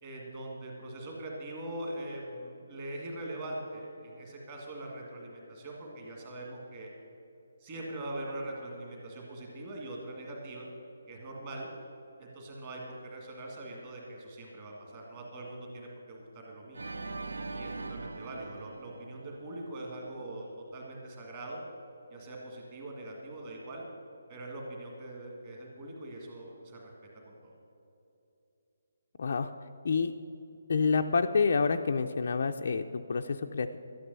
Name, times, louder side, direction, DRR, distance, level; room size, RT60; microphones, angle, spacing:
voice 1, 0.0-6.9 7.6-10.7 11.1-11.7 12.2-16.8 17.5-20.5 20.7-21.6 22.1-23.8 24.3-26.9 27.2-27.5, right 1 dB, 20° right, -2 dB, 1.8 m, -42 dB
Organ, 16.7-19.9, right 3 dB, 90° right, 0.7 m, -41 dB
voice 2, 29.2-29.5 29.8-30.1 30.7-33.8, left 5 dB, 40° left, 5 dB, 0.4 m, -28 dB
12.5 x 10.0 x 6.7 m, 2.8 s
hypercardioid pair, 180°, 0 cm